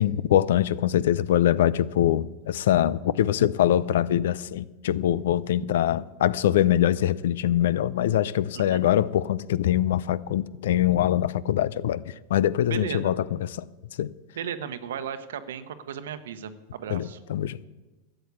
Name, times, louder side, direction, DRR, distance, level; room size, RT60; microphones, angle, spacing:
voice 1, 0.0-12.0 12.3-13.5 14.0-14.1 16.9-17.7, left 11 dB, 75° left, 0.5 m, -23 dB
voice 2, 12.7-13.1 14.4-17.2, right 8 dB, 80° right, 1.0 m, -35 dB
13.0 x 7.9 x 8.3 m
hypercardioid pair, 105°, 0 cm